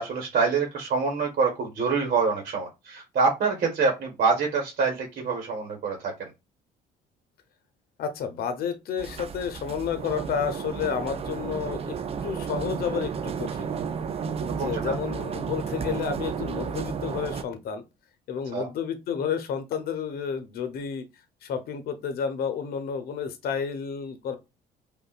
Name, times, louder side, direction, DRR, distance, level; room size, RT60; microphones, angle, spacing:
voice 1, 0.0-6.3 14.4-15.0 18.5-18.7, right 4 dB, 50° right, 1.4 m, -26 dB
voice 2, 8.0-12.0 12.2-13.8 14.5-17.8 18.3-21.0 21.4-24.4, left 7 dB, 65° left, 0.9 m, -31 dB
sound 1, 9.0-17.4, right 6 dB, 35° right, 0.5 m, -32 dB
5.3 x 2.5 x 2.4 m
cardioid pair, 110°, 17 cm